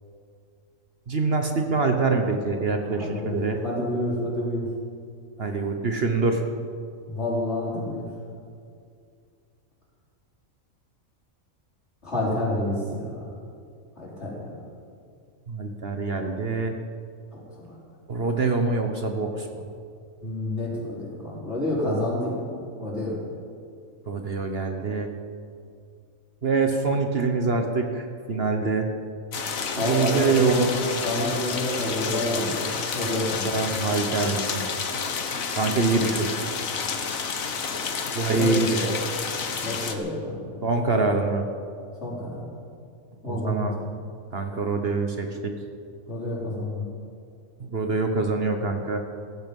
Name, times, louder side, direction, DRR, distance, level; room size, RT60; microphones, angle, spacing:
voice 1, 1.1-3.6 5.4-6.4 15.5-16.8 18.1-19.6 24.1-25.1 26.4-28.9 29.7-31.0 33.4-34.6 35.6-36.3 38.1-38.8 40.6-41.4 43.2-43.7 44.3-45.5 47.6-49.0, right 4 dB, 50° right, 5 dB, 1.3 m, -25 dB
voice 2, 2.8-4.7 7.1-8.1 12.0-13.3 14.0-14.6 17.3-17.8 20.2-23.2 29.8-33.8 35.9-36.0 38.3-38.9 39.6-40.6 42.0-42.5 43.2-43.9 46.1-46.8, left 1 dB, 55° left, -6 dB, 5.1 m, -29 dB
sound 1, 29.3-39.9, left 5 dB, 80° left, 1.6 m, -30 dB
16.5 x 15.0 x 5.4 m, 2.3 s
omnidirectional pair, 1.4 m